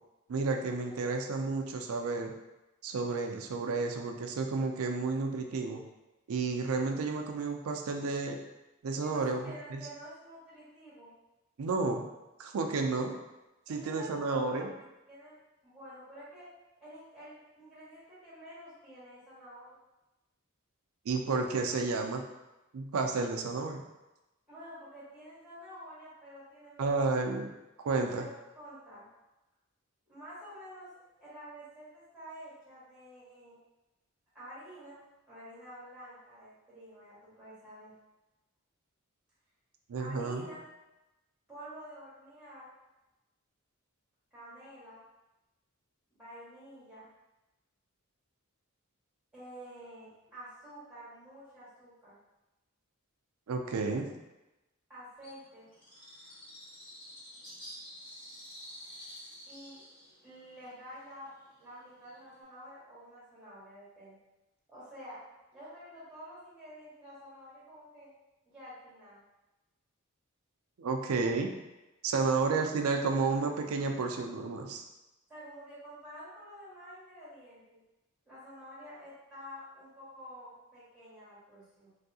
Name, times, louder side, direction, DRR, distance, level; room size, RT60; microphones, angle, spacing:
voice 1, 0.3-2.3 2.8-5.8 6.3-8.4 8.8-9.4 9.7-9.8 11.6-12.1 12.4-13.2 13.7-14.7 21.1-22.2 22.7-23.8 26.8-27.5 27.8-28.3 39.9-40.5 53.5-54.1 70.8-71.5 72.0-74.8, right 4 dB, 75° right, 3 dB, 0.4 m, -31 dB
voice 2, 9.0-11.1 13.7-15.4 15.6-16.5 16.8-19.8 24.5-26.9 28.2-29.1 30.1-30.9 31.2-33.6 34.3-35.0 35.3-37.9 40.0-40.6 41.5-42.7 44.3-45.0 46.1-47.1 49.3-52.2 54.9-55.7 59.5-59.8 60.2-61.3 61.6-64.1 64.7-65.2 65.5-68.1 68.4-69.2 72.3-72.4 75.3-77.8 78.3-81.9, equal, 5° right, -10 dB, 1.4 m, -49 dB
Bird, 55.2-62.4, equal, 25° left, 1.3 m, -50 dB
3.2 x 2.6 x 2.7 m, 1.0 s
head